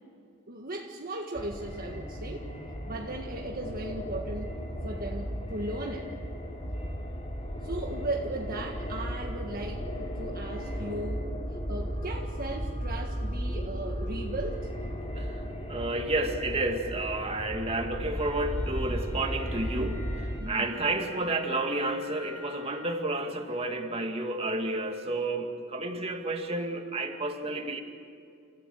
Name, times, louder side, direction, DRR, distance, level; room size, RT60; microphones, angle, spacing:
voice 1, 0.5-2.5 2.9-4.6 4.8-6.1 7.6-11.3 11.7-14.7 20.4-20.8, right 2 dB, 45° right, 1 dB, 1.7 m, -37 dB
sound 1, 1.3-20.4, equal, 30° left, 2.7 m, -35 dB
voice 2, 15.7-27.8, right 2 dB, 30° right, 4 dB, 2.1 m, -31 dB
Wind instrument woodwind instrument, 18.1-23.0, left 2 dB, 10° left, 5.2 m, -50 dB
29.5 x 16.0 x 7.9 m, 2.4 s
head